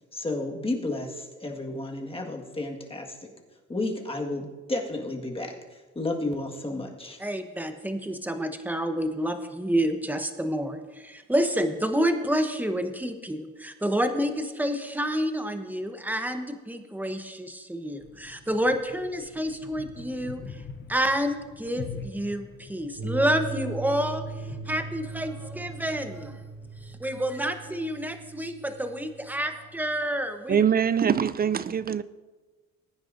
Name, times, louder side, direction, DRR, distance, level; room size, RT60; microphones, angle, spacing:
voice 1, 0.1-3.3 3.7-7.2, left 2 dB, 20° left, 1.8 m, -32 dB
voice 2, 7.2-20.6 20.9-26.4 26.8-30.6, equal, 5° right, 1.0 m, -29 dB
sound 1, 18.0-26.9, left 5 dB, 35° left, 0.9 m, -45 dB
sound 2, 23.0-30.0, right 3 dB, 55° right, 1.8 m, -39 dB
voice 3, 30.5-32.0, right 8 dB, 30° right, 0.4 m, -23 dB
20.0 x 9.7 x 2.7 m
cardioid pair, 90°, 30 cm